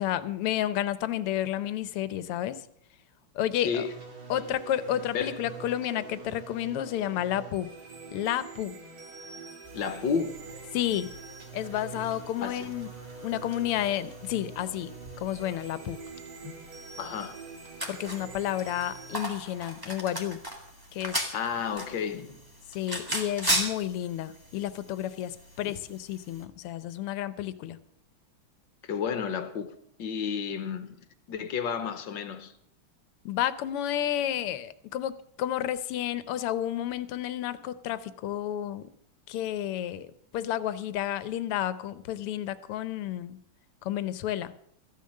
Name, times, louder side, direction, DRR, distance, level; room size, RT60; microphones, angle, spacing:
voice 1, 0.0-2.6 3.4-3.9 4.3-7.7 8.1-8.8 10.7-11.2 11.5-12.9 13.2-14.9 15.2-16.0 17.9-20.4 20.9-21.4 22.7-27.8 33.3-38.9 39.3-43.4 43.8-44.5, left 11 dB, 85° left, 1.7 m, -31 dB
sound 1, 3.7-19.2, right 5 dB, 70° right, 3.1 m, -45 dB
sound 2, 9.6-26.4, right 1 dB, 10° right, 1.8 m, -38 dB
voice 2, 9.7-10.4 12.4-12.7 16.4-16.5 17.0-17.4 21.3-22.4 25.6-25.7 28.8-29.7 30.0-31.0 31.3-32.5, left 6 dB, 65° left, 1.6 m, -31 dB
14.0 x 10.5 x 6.4 m
omnidirectional pair, 2.4 m